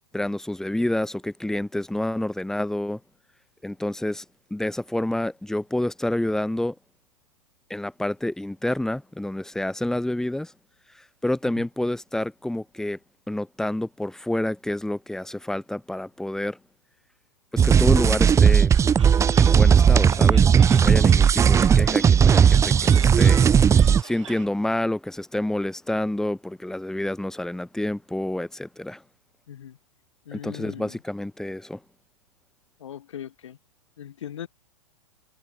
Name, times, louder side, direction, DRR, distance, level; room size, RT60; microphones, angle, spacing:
voice 1, 0.1-3.0 3.6-4.2 4.5-6.7 7.7-10.5 11.2-13.0 13.3-16.6 17.5-18.7 19.4-29.0 30.3-31.8, left 1 dB, 5° left, 6.0 m, -28 dB
sound 1, 17.6-24.0, right 7 dB, 20° right, 1.9 m, -16 dB
sound 2, 18.7-24.5, right 9 dB, 70° right, 6.4 m, -41 dB
voice 2, 29.5-29.8 30.3-31.0 32.8-33.6 34.0-34.5, left 10 dB, 70° left, 3.5 m, -39 dB
hypercardioid pair, 110°, 16 cm